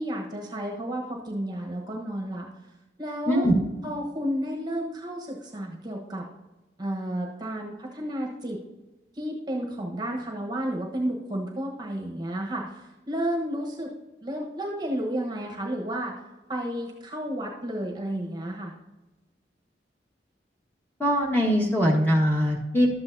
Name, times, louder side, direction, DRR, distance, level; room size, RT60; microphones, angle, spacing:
voice 1, 0.0-2.5 3.0-3.5 3.8-6.2 6.8-8.6 9.1-13.9 14.2-16.1 16.5-18.7, right 1 dB, 25° right, 0 dB, 1.1 m, -32 dB
voice 2, 21.0-22.9, equal, 10° left, -2 dB, 1.5 m, -22 dB
12.5 x 8.0 x 2.7 m, 1.1 s
head